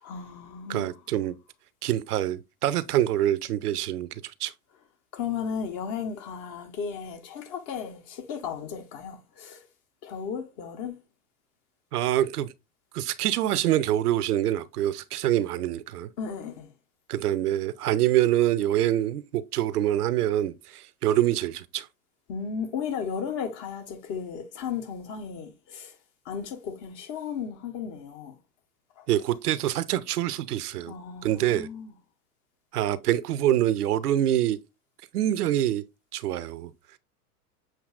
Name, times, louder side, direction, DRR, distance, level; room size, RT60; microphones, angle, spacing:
voice 1, 0.0-0.9 5.1-9.6 10.0-10.9 16.2-16.7 22.3-26.0 26.2-28.4 29.0-29.1 30.9-31.9, left 6 dB, 40° left, 1.4 m, -35 dB
voice 2, 0.7-1.4 1.8-4.1 4.4-4.5 11.9-12.5 12.9-16.1 17.1-21.9 29.1-30.9 31.2-31.7 32.7-34.6 35.1-35.8 36.1-36.7, right 12 dB, 75° right, 0.6 m, -25 dB
7.3 x 2.8 x 2.5 m
hypercardioid pair, 100°, 46 cm